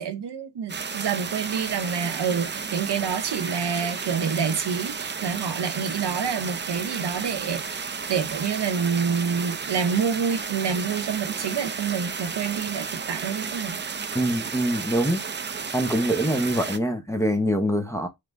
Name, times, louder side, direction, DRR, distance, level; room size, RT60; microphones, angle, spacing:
voice 1, 0.0-13.8, right 6 dB, 65° right, 0.8 m, -27 dB
sound 1, 0.7-16.8, right 5 dB, 25° right, 0.5 m, -33 dB
voice 2, 14.1-15.2 15.7-18.1, equal, 5° left, 0.8 m, -24 dB
4.9 x 2.3 x 3.5 m
cardioid pair, 60°, 44 cm